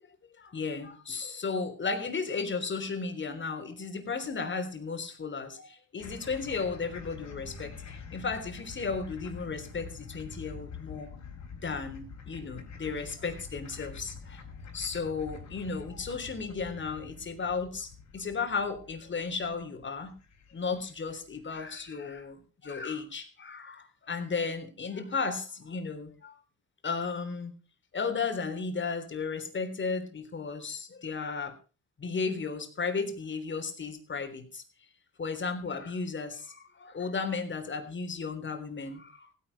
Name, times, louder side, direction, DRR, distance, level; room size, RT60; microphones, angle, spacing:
voice 1, 0.4-11.1 11.6-14.4 14.7-20.1 20.5-26.4 26.8-27.5 27.9-31.6 32.0-34.6 35.2-39.3, left 4 dB, 40° left, 7 dB, 3.6 m, -34 dB
sound 1, 6.0-21.4, left 5 dB, 65° left, 4.3 m, -46 dB
16.0 x 10.0 x 5.5 m, 0.36 s
cardioid pair, 90°, 30 cm